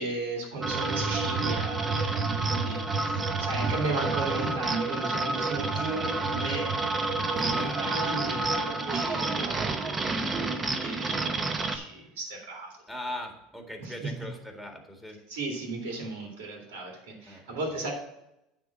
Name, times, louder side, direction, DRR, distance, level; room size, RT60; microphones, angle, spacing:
voice 1, 0.0-2.8 3.4-6.7 7.3-11.2 11.5-12.7 13.8-14.1 15.3-17.9, right 3 dB, 85° right, 0 dB, 2.2 m, -35 dB
sound 1, 0.6-11.8, right 3 dB, 25° right, 0.9 m, -29 dB
voice 2, 2.7-3.0 5.7-6.1 7.4-7.9 9.0-9.4 12.9-15.2 17.3-17.8, left 1 dB, 5° right, 2 dB, 1.9 m, -41 dB
9.2 x 3.7 x 7.1 m, 0.86 s
supercardioid pair, 100°, 0 cm